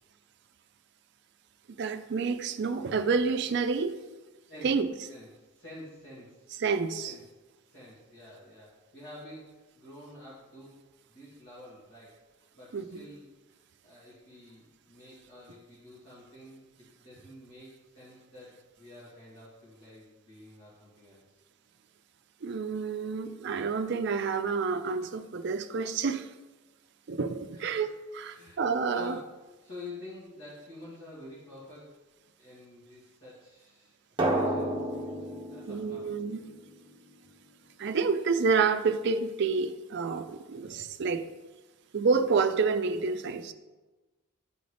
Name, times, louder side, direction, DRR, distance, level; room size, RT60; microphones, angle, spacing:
voice 1, 1.8-4.0 4.6-4.9 6.6-7.2 12.7-13.0 22.4-26.3 27.1-29.2 35.7-36.4 37.8-41.3 41.9-43.5, right 5 dB, 55° right, 9 dB, 0.4 m, -29 dB
voice 2, 5.1-6.4 7.0-7.2 7.7-10.7 11.1-12.1 12.5-13.2 13.5-21.2 27.5-27.9 28.3-28.7 28.9-29.3 29.6-31.9 32.4-34.9 35.5-36.1 40.5-40.6, left 2 dB, 55° left, -11 dB, 2.3 m, -49 dB
Drum, 34.2-36.9, right 1 dB, 25° right, 0.8 m, -31 dB
10.5 x 3.9 x 3.4 m, 1.2 s
head